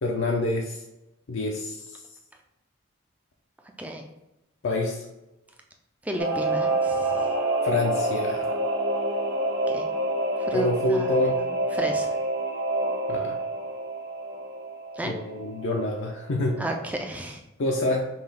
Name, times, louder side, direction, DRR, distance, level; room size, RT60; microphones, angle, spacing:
voice 1, 0.0-0.8 1.3-2.0 4.6-5.1 7.6-8.6 10.5-11.4 13.1-13.4 15.0-16.6 17.6-18.0, left 2 dB, 65° left, -1 dB, 0.5 m, -26 dB
voice 2, 6.0-7.3 9.7-9.8 10.4-11.4 11.7-12.2 14.9-15.1 16.6-17.4, right 1 dB, 5° right, 2 dB, 0.3 m, -33 dB
Singing / Musical instrument, 6.2-16.2 16.5-16.6, right 2 dB, 65° right, 1.0 m, -28 dB
5.5 x 2.3 x 3.4 m, 0.96 s
head